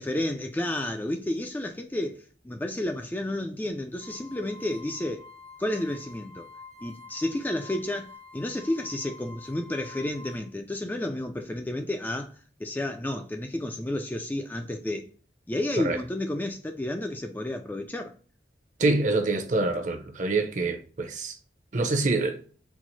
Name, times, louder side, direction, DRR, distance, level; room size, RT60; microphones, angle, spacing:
voice 1, 0.0-5.3 5.6-6.5 6.8-12.3 12.6-15.1 15.5-18.1, left 1 dB, 10° left, 0.3 m, -31 dB
sound 1, 4.0-10.4, left 4 dB, 65° right, 1.2 m, -48 dB
voice 2, 18.8-21.4 21.7-22.4, right 2 dB, 45° right, 0.7 m, -26 dB
4.5 x 2.0 x 3.9 m
head